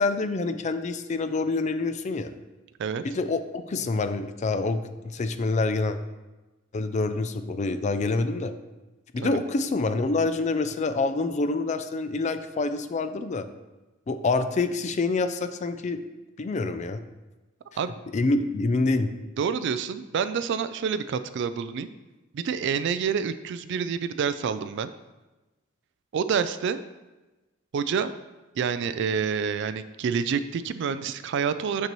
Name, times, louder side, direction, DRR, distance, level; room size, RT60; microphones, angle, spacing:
voice 1, 0.0-2.3 3.0-4.8 5.0-6.0 6.7-8.5 9.1-13.5 14.1-16.0 16.4-17.0 18.1-19.1, left 3 dB, 35° left, 10 dB, 0.4 m, -26 dB
voice 2, 19.4-21.9 22.3-24.9 26.1-26.8 27.7-28.1 28.6-31.9, right 6 dB, 60° right, 12 dB, 0.3 m, -28 dB
6.7 x 6.5 x 3.0 m, 1.1 s
head